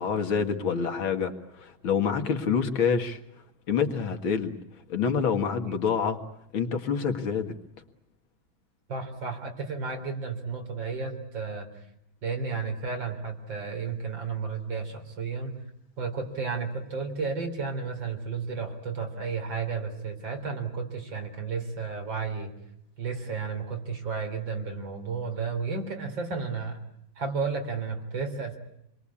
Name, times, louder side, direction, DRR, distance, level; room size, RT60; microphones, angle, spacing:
voice 1, 0.0-3.2 3.7-4.6 4.9-6.2 6.5-7.5, left 6 dB, 80° left, 6 dB, 2.6 m, -27 dB
voice 2, 8.9-11.9 12.2-15.6 16.0-22.5 23.0-26.8 27.2-28.6, right 5 dB, 65° right, 5 dB, 4.4 m, -32 dB
28.0 x 22.0 x 8.5 m, 0.79 s
omnidirectional pair, 2.2 m